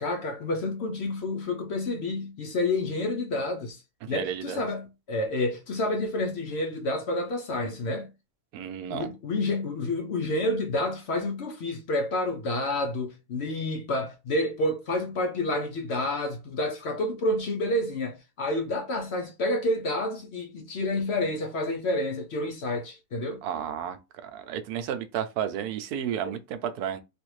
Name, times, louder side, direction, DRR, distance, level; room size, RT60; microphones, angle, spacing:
voice 1, 0.0-3.8 4.1-8.1 8.9-23.4 26.2-26.4, left 1 dB, 60° left, 0.7 m, -29 dB
voice 2, 4.0-4.7 8.5-9.1 23.4-24.0 24.2-27.0, right 9 dB, 90° right, 1.1 m, -32 dB
3.4 x 2.4 x 3.1 m
omnidirectional pair, 1.6 m